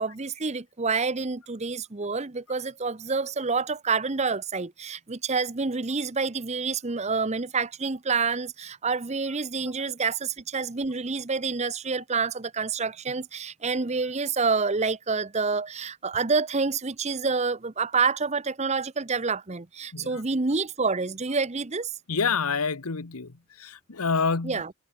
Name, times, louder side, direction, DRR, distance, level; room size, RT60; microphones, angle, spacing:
voice 1, 0.0-21.9 24.4-24.7, right 4 dB, 30° right, 0.9 m, -28 dB
voice 2, 22.1-23.3 23.6-24.6, left 5 dB, 85° left, 1.2 m, -27 dB
head